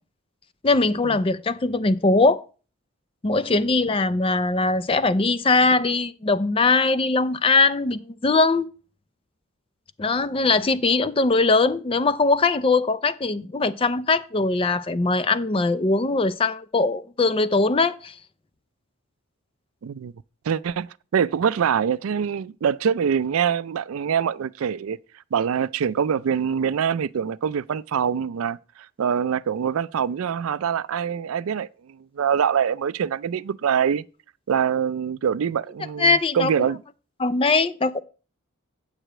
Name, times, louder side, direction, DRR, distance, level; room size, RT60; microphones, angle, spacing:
voice 1, 0.6-2.4 3.2-8.7 10.0-18.1 36.0-36.5 37.2-38.0, left 3 dB, 25° left, 0.4 m, -21 dB
voice 2, 19.8-20.1 20.5-25.0 25.3-28.6 29.0-34.0 34.5-36.8, right 7 dB, 85° right, 0.4 m, -24 dB
8.9 x 4.9 x 7.6 m
head